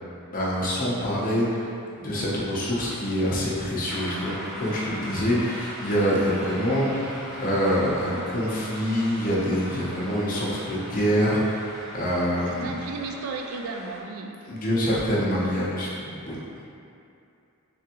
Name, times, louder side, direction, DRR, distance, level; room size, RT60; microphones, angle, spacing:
voice 1, 0.3-1.7 1.9-12.7 14.5-16.4, equal, 40° left, -7 dB, 0.8 m, -25 dB
sound 1, 3.9-14.0, equal, ahead, 0.6 m, -40 dB
Breathing, 6.2-7.7 10.2-11.6, equal, 35° right, 0.8 m, -44 dB
voice 2, 12.6-14.3, right 3 dB, 80° right, 2 dB, 0.4 m, -34 dB
3.6 x 3.4 x 2.9 m, 2.6 s
head